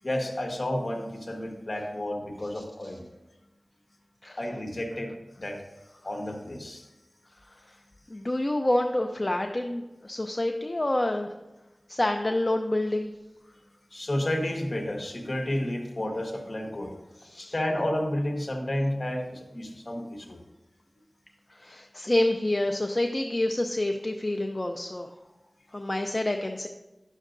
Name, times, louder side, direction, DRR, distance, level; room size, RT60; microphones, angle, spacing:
voice 1, 0.0-3.0 4.4-5.6 6.0-6.9 13.9-17.0 17.4-20.4, left 1 dB, 55° left, 2 dB, 1.3 m, -31 dB
voice 2, 8.1-11.3 11.9-13.1 17.2-17.5 21.5-25.1 25.7-26.7, left 1 dB, 40° left, 4 dB, 0.5 m, -28 dB
11.0 x 6.3 x 2.5 m, 1.0 s
wide cardioid pair, 40°, 0 cm